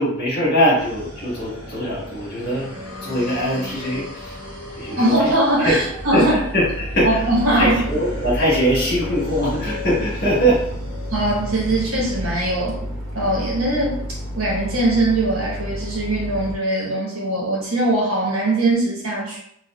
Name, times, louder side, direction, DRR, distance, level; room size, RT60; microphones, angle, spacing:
voice 1, 0.0-2.7 3.0-4.4 4.8-5.3 5.6-5.7 6.1-7.2 7.5-10.6, equal, 50° left, -7 dB, 1.5 m, -21 dB
sound 1, 0.8-12.3, left 1 dB, 20° right, 1.0 m, -34 dB
voice 2, 5.0-6.3 7.0-7.8 11.1-12.8 13.1-14.0 14.3-19.4, right 1 dB, 80° right, -4 dB, 1.2 m, -21 dB
sound 2, 7.5-16.6, equal, 65° right, 0.5 m, -31 dB
3.6 x 2.5 x 2.3 m, 0.71 s
head